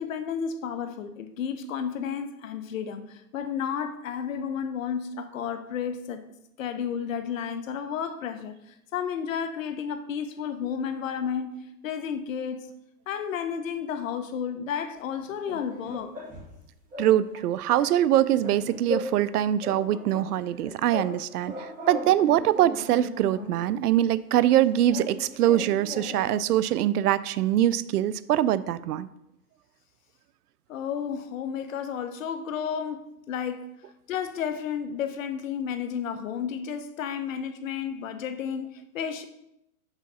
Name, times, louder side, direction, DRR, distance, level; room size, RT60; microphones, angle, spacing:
voice 1, 0.0-6.2 6.6-8.6 8.9-12.6 13.1-16.1 30.7-33.7 34.1-39.2, left 7 dB, 55° left, 9 dB, 0.8 m, -32 dB
sound 1, 15.2-16.6 16.9-17.1 17.4-19.3 19.6-21.2 21.4-23.6 24.4-26.4, left 1 dB, 15° right, 1.8 m, -38 dB
voice 2, 17.0-21.5 21.9-29.1, right 12 dB, 70° right, 17 dB, 0.5 m, -23 dB
5.8 x 3.9 x 5.8 m, 0.84 s
hypercardioid pair, 155°, 48 cm